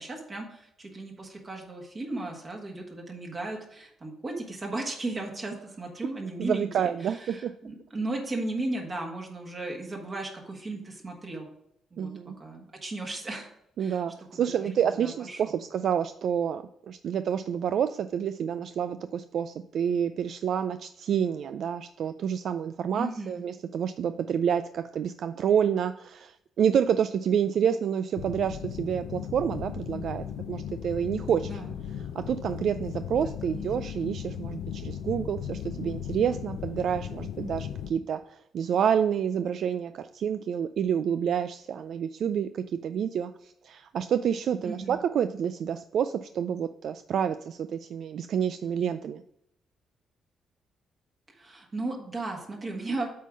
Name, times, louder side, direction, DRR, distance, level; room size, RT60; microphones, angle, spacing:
voice 1, 0.0-11.5 11.9-13.5 13.8-14.0 14.3-15.5 22.9-23.5 31.4-31.8 33.2-33.7 44.6-45.0 51.3-53.1, right 2 dB, 35° right, 0 dB, 1.6 m, -36 dB
voice 2, 6.4-7.5 12.0-12.4 13.8-31.6 32.2-49.2, right 8 dB, 65° right, 11 dB, 0.3 m, -28 dB
sound 1, 28.2-37.9, left 9 dB, 85° left, 0.6 m, -36 dB
8.3 x 3.8 x 6.1 m, 0.76 s
cardioid pair, 90°, 0 cm